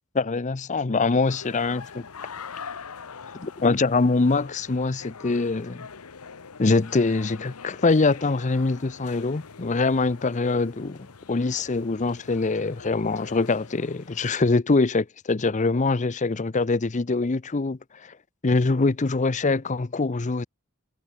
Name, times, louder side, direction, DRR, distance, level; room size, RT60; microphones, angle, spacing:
voice 1, 0.1-2.1 3.4-5.9 6.6-11.0 11.3-17.8 18.4-20.5, left 3 dB, 35° left, 0.6 m, -23 dB
sound 1, 1.3-14.4, left 6 dB, 85° left, 1.0 m, -44 dB
head